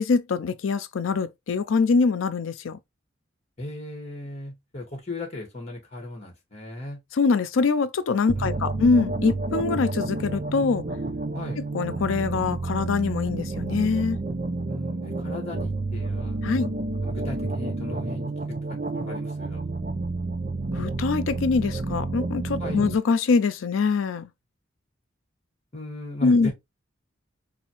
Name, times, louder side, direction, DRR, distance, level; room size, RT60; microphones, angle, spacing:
voice 1, 0.0-2.8 7.1-10.8 11.7-14.2 16.4-16.7 20.7-24.3 26.2-26.5, left 4 dB, 85° left, 0.4 m, -23 dB
voice 2, 3.6-7.0 8.3-8.9 11.3-11.6 14.7-16.4 17.0-19.6 22.6-23.0 25.7-26.5, left 1 dB, 35° left, 1.3 m, -37 dB
sound 1, 8.3-22.9, right 2 dB, 40° right, 0.6 m, -30 dB
4.0 x 2.7 x 2.9 m
head